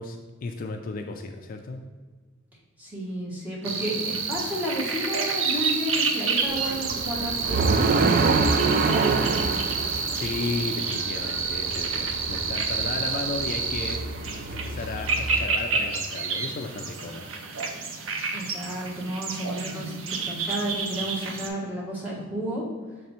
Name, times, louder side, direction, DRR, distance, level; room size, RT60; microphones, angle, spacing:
voice 1, 0.0-1.8 8.0-8.3 9.9-14.0 14.5-17.3, left 3 dB, 45° left, 5 dB, 0.4 m, -34 dB
voice 2, 2.8-9.5 18.3-19.9 20.2-22.6, equal, 10° right, -6 dB, 1.4 m, -32 dB
sound 1, 3.6-21.5, right 5 dB, 85° right, 0.7 m, -29 dB
sound 2, 6.5-15.5, right 4 dB, 45° right, 0.3 m, -27 dB
6.5 x 3.3 x 4.3 m, 1.4 s
head